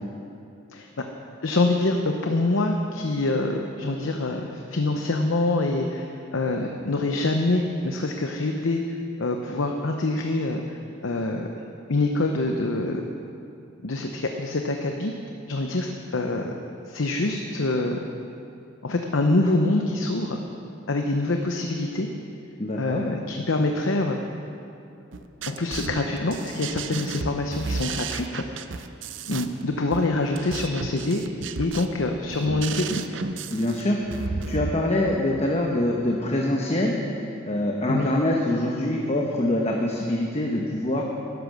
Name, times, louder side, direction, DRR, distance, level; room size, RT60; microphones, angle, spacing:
voice 1, 1.4-8.8 9.2-10.8 11.0-11.5 11.9-13.0 13.8-15.1 15.5-16.5 16.9-18.0 18.8-20.4 20.9-22.1 22.8-24.2 25.5-28.4 29.3-31.2 31.6-33.0 37.9-38.1, left 2 dB, 75° left, 3 dB, 0.8 m, -25 dB
voice 2, 22.6-23.0 33.5-37.0 37.4-41.0, left 1 dB, 30° left, 0 dB, 1.0 m, -24 dB
sound 1, 25.1-34.7, right 4 dB, 65° right, 0.6 m, -33 dB
12.0 x 11.0 x 6.5 m, 2.6 s
head